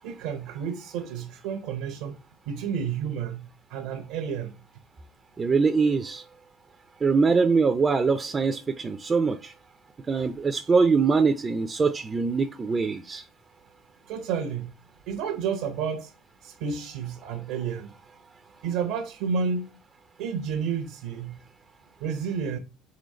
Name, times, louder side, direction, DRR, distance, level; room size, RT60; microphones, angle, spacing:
voice 1, 0.0-2.2 2.5-4.6 14.1-14.7 15.1-16.1 16.4-18.0 18.6-19.8 20.2-21.4 22.0-22.6, right 6 dB, 80° right, 0.6 m, -31 dB
voice 2, 5.4-6.2 7.0-9.5 10.1-13.2, right 4 dB, 30° right, 0.4 m, -23 dB
3.8 x 3.0 x 4.2 m
supercardioid pair, 80°, 0 cm